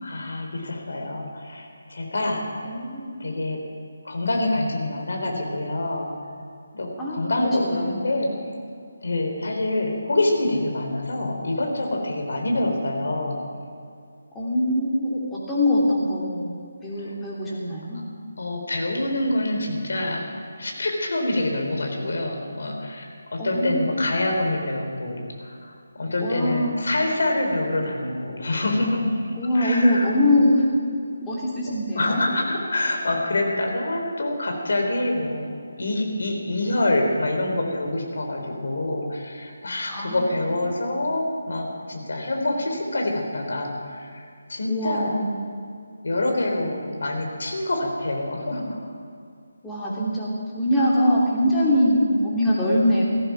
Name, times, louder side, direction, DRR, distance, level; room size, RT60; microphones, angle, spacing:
voice 1, 0.0-2.7 3.2-3.6 4.0-6.1 6.7-8.3 9.0-13.4 17.0-17.1 18.4-20.2 20.6-25.7 26.0-29.2 29.5-30.1 32.0-35.5 35.8-44.2 44.5-45.1 46.0-48.9, left 1 dB, 60° left, 2 dB, 3.6 m, -26 dB
voice 2, 2.6-3.2 7.0-8.2 14.3-16.6 16.8-18.1 23.4-24.1 26.2-26.8 29.3-30.7 31.2-32.2 39.9-40.3 40.7-40.9 44.7-45.4 49.6-53.0, left 1 dB, 10° left, -6 dB, 3.1 m, -23 dB
17.0 x 14.0 x 5.8 m, 2.3 s
figure-of-eight pair, 150°, 0 cm